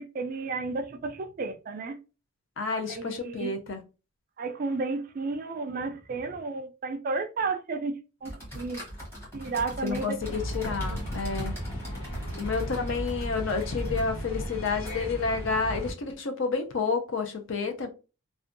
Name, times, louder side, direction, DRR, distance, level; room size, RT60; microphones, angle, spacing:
voice 1, 0.0-2.0 2.7-3.5 4.4-8.8 9.3-10.2 10.7-11.0, right 3 dB, 40° right, 0.3 m, -33 dB
voice 2, 2.6-3.8 9.8-11.6 12.4-17.9, left 4 dB, 60° left, 0.5 m, -30 dB
sound 1, 8.2-15.4, equal, 10° left, 1.0 m, -43 dB
sound 2, 10.2-15.9, equal, 90° left, 1.2 m, -35 dB
2.6 x 2.1 x 2.5 m
head